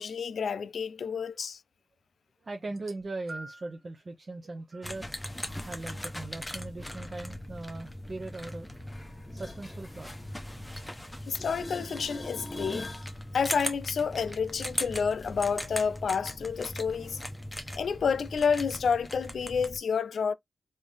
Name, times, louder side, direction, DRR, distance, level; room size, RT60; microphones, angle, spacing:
voice 1, 0.0-1.6 11.3-12.9 13.3-17.2 17.8-20.3, left 6 dB, 80° left, 0.3 m, -29 dB
voice 2, 2.4-5.1 5.7-8.7 9.3-10.1, right 2 dB, 45° right, 0.5 m, -40 dB
sound 1, 2.7-3.8 4.7-4.9 5.9-6.0, right 2 dB, 65° right, 0.9 m, -46 dB
sound 2, 4.8-19.8, left 1 dB, 10° left, 0.7 m, -39 dB
sound 3, 8.9-10.9 11.2-13.1 18.9-19.0, left 2 dB, 25° left, 1.1 m, -43 dB
3.5 x 2.7 x 3.3 m
wide cardioid pair, 80°, 0 cm